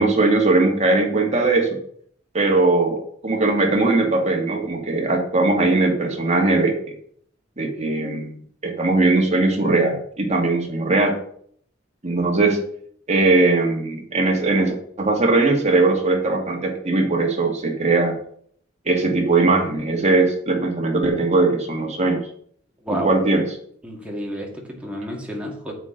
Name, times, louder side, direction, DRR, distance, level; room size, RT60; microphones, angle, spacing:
voice 1, 0.0-1.8 2.3-6.9 7.6-8.3 8.6-11.2 12.0-12.6 13.1-18.2 18.9-22.2 23.0-23.4, right 2 dB, 35° right, 2 dB, 1.7 m, -19 dB
voice 2, 22.8-23.1 23.8-25.7, equal, 5° right, -1 dB, 2.0 m, -30 dB
9.0 x 8.1 x 3.9 m, 0.62 s
head